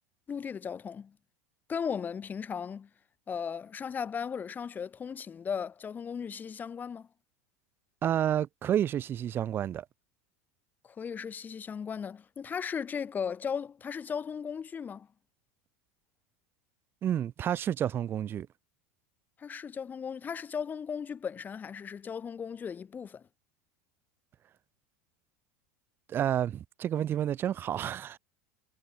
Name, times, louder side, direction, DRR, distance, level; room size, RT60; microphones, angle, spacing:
voice 1, 0.3-1.2 1.7-2.9 3.3-7.1 10.8-15.1 19.4-23.2, left 7 dB, 25° left, 2.6 m, -36 dB
voice 2, 8.0-9.8 17.0-18.5 26.1-28.2, right 10 dB, 30° right, 0.4 m, -30 dB
supercardioid pair, 120°, 7 cm